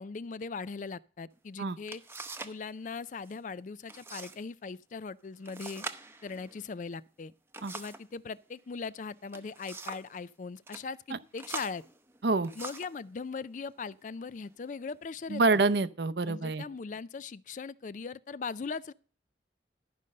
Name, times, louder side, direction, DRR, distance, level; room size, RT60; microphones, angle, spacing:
voice 1, 0.0-2.0 2.4-5.8 6.2-7.3 7.7-11.8 12.6-15.6 16.3-18.9, left 4 dB, 45° left, 0.4 m, -40 dB
sound 1, 1.4-1.5 1.9-2.6 2.9-3.4 3.9-4.4 4.7-4.8 5.5-8.1 9.1-10.1 10.6-10.8 11.4-13.0 13.8-13.9 14.5-15.0, right 3 dB, 15° right, 0.7 m, -44 dB
voice 2, 15.3-16.6, right 3 dB, 65° right, 0.7 m, -27 dB
12.5 x 5.3 x 6.5 m
head